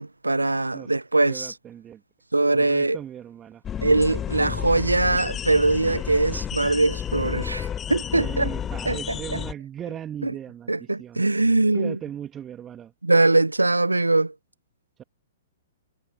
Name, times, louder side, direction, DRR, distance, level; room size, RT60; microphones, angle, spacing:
voice 1, 0.0-1.5 2.3-3.0 3.8-8.5 8.9-9.4 10.2-10.3 10.7-12.0 13.0-14.3, right 2 dB, 85° right, 0.6 m, -22 dB
voice 2, 1.3-2.0 2.5-3.6 8.1-11.2 11.7-12.9 15.0-15.1, right 10 dB, 20° right, 2.0 m, -38 dB
sound 1, 3.6-9.5, left 9 dB, 20° left, 1.2 m, -31 dB
figure-of-eight pair, 115°, 0 cm